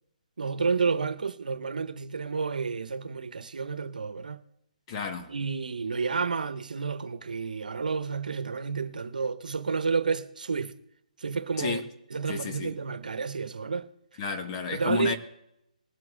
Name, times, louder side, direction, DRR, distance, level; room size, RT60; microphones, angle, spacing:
voice 1, 0.4-4.4 5.3-10.7 11.2-11.8 12.1-13.9 14.7-15.1, right 5 dB, 80° right, 1.0 m, -30 dB
voice 2, 4.9-5.3 11.6-11.9 12.3-12.7 14.2-15.1, left 5 dB, 30° left, 1.6 m, -31 dB
20.5 x 7.8 x 3.9 m
hypercardioid pair, 150°, 4 cm